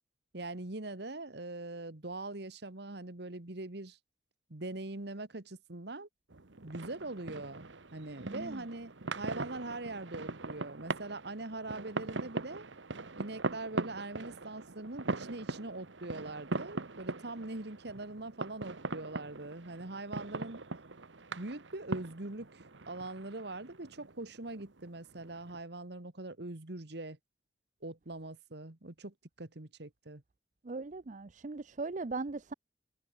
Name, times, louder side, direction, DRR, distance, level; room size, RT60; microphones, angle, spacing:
voice 1, 0.3-4.0 4.5-6.1 6.6-12.7 13.2-20.6 21.4-27.2 27.8-30.2, right 2 dB, 60° right, 1.7 m, -42 dB
sound 1, 6.3-25.6, right 3 dB, 90° right, 1.4 m, -41 dB
voice 2, 8.3-8.6 30.6-32.5, right 3 dB, 40° right, 0.6 m, -39 dB
head